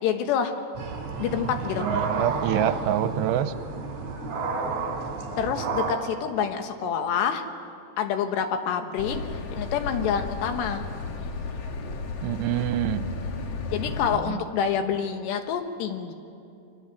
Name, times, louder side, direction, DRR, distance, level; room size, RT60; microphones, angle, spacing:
voice 1, 0.0-0.6 1.2-1.9 5.4-7.4 8.0-10.9 13.7-16.1, left 7 dB, 90° left, 6 dB, 3.6 m, -27 dB
sound 1, 0.7-5.9, right 4 dB, 45° right, 4.4 m, -31 dB
voice 2, 1.7-3.5 12.2-13.1 14.3-14.4, right 11 dB, 85° right, 11 dB, 3.0 m, -26 dB
sound 2, 9.0-14.2, left 3 dB, 60° left, 1.7 m, -33 dB
29.0 x 22.5 x 7.4 m, 2.6 s
omnidirectional pair, 4.8 m